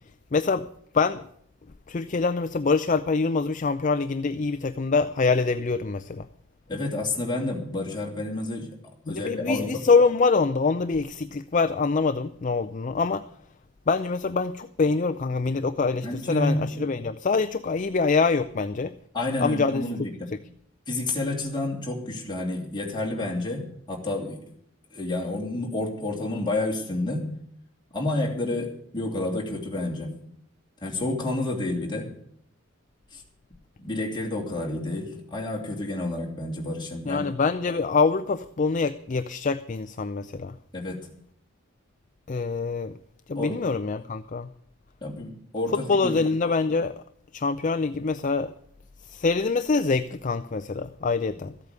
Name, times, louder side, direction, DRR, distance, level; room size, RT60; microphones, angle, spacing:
voice 1, 0.3-0.7 0.9-1.2 1.9-6.3 9.1-13.2 13.9-18.9 19.4-19.9 37.1-40.6 42.3-43.0 43.3-44.5 45.7-47.0 47.3-48.5 49.0-51.5, left 4 dB, 40° left, 11 dB, 0.5 m, -25 dB
voice 2, 6.7-8.7 9.1-9.7 16.0-16.9 19.1-20.3 20.9-24.4 24.9-27.3 27.9-30.1 30.8-32.1 33.1-33.2 33.8-37.3 40.7-41.0 43.3-43.6 45.0-46.2, left 2 dB, 25° left, -1 dB, 3.0 m, -29 dB
14.5 x 8.5 x 8.1 m, 0.66 s
head